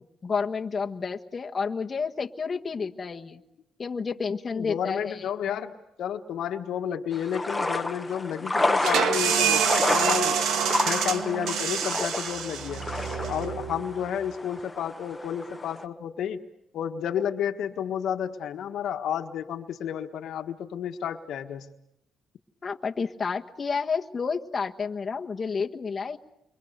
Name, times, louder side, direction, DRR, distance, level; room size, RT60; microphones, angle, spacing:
voice 1, 0.2-3.4 3.8-5.3 22.6-26.2, left 5 dB, 35° left, 2 dB, 1.4 m, -30 dB
voice 2, 4.5-10.4 10.8-12.9 13.3-16.4 16.7-21.7, left 9 dB, 75° left, 6 dB, 1.5 m, -31 dB
sound 1, 7.1-15.8, left 2 dB, 10° left, 1.4 m, -30 dB
sound 2, 8.8-14.2, right 7 dB, 80° right, 1.7 m, -27 dB
29.0 x 24.0 x 6.7 m, 0.82 s
cardioid pair, 90°, 0 cm